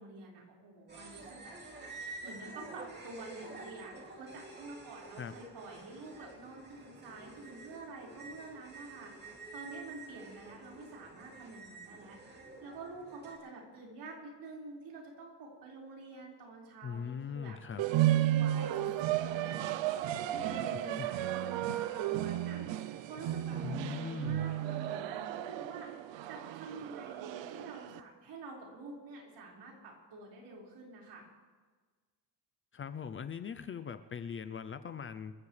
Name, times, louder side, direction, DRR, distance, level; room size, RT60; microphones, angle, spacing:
voice 1, 0.0-1.6 2.2-12.2 12.6-17.6 18.0-25.9 26.3-31.3, right 3 dB, 65° right, -2 dB, 5.0 m, -48 dB
sound 1, 0.9-13.4, right 3 dB, 25° right, 2.7 m, -49 dB
voice 2, 16.8-17.8 21.0-21.1 23.6-24.5 32.7-35.3, left 7 dB, 30° left, 11 dB, 0.5 m, -40 dB
sound 2, 17.8-28.0, right 13 dB, 85° right, 0.7 m, -33 dB
28.0 x 14.5 x 3.3 m, 1.4 s
cardioid pair, 180°, 43 cm